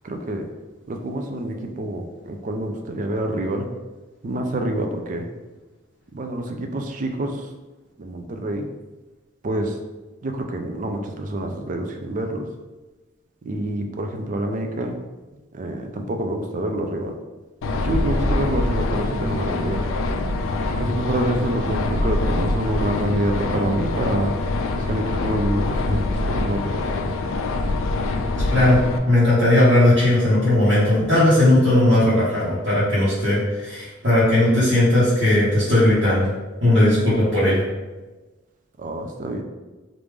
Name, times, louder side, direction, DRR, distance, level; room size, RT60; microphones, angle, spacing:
voice 1, 0.0-0.5 0.9-3.7 4.2-5.3 6.1-7.5 8.0-8.7 9.4-9.8 10.2-12.5 13.4-14.9 15.5-17.1 17.7-19.9 20.8-24.3 24.8-26.8 38.8-39.4, right 1 dB, 40° right, 4 dB, 0.4 m, -27 dB
sound 1, 17.6-29.0, left 2 dB, 75° left, 0.3 m, -24 dB
voice 2, 29.1-36.3 36.6-37.6, left 1 dB, 55° right, -12 dB, 1.1 m, -17 dB
3.2 x 2.5 x 3.4 m, 1.2 s
head